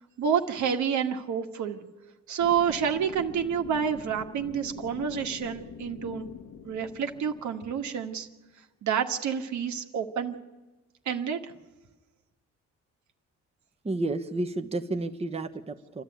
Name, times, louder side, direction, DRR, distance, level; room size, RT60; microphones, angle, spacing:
voice 1, 0.2-1.8 2.3-6.3 6.6-8.3 8.8-10.4 11.0-11.5, right 7 dB, 70° right, 5 dB, 1.7 m, -29 dB
sound 1, 2.4-8.3, left 7 dB, 75° left, 1.6 m, -44 dB
voice 2, 13.8-16.0, right 2 dB, 20° right, 5 dB, 1.1 m, -31 dB
27.5 x 12.0 x 9.3 m, 1.1 s
cardioid pair, 90°, 30 cm